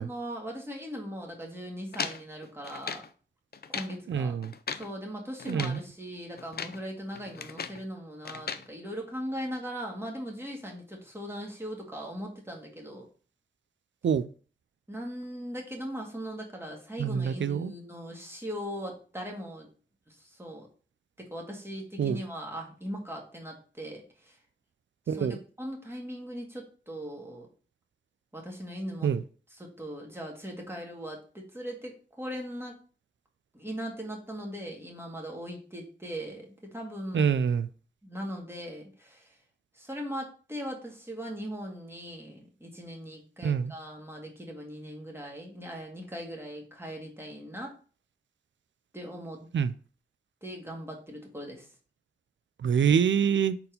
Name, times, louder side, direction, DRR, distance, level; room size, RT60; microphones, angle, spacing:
voice 1, 0.0-3.0 3.7-4.3 4.7-13.0 14.9-19.7 20.1-20.7 21.2-24.4 25.1-25.3 25.6-27.5 28.3-29.1 29.5-32.8 33.5-37.3 38.0-39.4 39.7-47.7 48.9-49.5 50.4-51.7, equal, 10° right, 1.9 m, -39 dB
sound 1, 1.9-3.1 3.5-4.0 4.4-4.9 5.4-5.8 6.4-6.8 7.1-7.8 8.3-8.7, left 6 dB, 55° left, 0.5 m, -37 dB
voice 2, 4.1-4.5 5.5-5.8 14.0-14.3 17.0-17.7 22.0-22.2 25.1-25.4 29.0-29.2 37.1-37.7 43.4-43.7 49.5-49.7 52.6-53.6, right 7 dB, 80° right, 0.4 m, -26 dB
4.3 x 4.1 x 5.2 m
wide cardioid pair, 60°, 19 cm